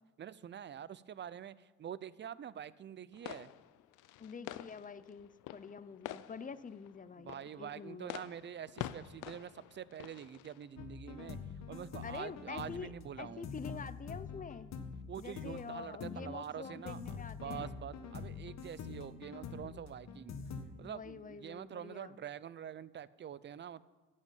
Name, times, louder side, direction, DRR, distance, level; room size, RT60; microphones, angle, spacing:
voice 1, 0.2-3.5 7.2-11.4 11.7-13.5 15.1-17.0 17.4-20.3 20.8-23.8, right 9 dB, 40° right, 18 dB, 0.5 m, -46 dB
sound 1, 3.1-10.8, left 13 dB, 90° left, 0.5 m, -48 dB
voice 2, 4.2-8.1 12.0-12.9 13.2-14.7 15.2-17.8 20.8-22.2, left 6 dB, 25° left, 15 dB, 0.6 m, -46 dB
sound 2, 10.8-20.6, left 5 dB, 60° left, 1.4 m, -45 dB
12.5 x 6.5 x 9.1 m, 1.2 s
cardioid pair, 90°, 30 cm